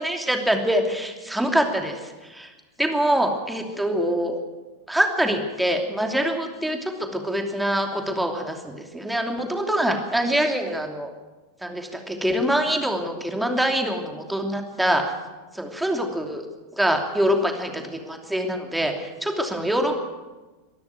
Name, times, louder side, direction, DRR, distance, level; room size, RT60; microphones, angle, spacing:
voice 1, 0.0-2.5 2.8-4.4 4.9-11.1 11.6-15.0 15.5-16.4 16.7-20.0, equal, 5° right, 3 dB, 2.9 m, -24 dB
23.5 x 13.0 x 9.2 m, 1.2 s
figure-of-eight pair, 90°, 0 cm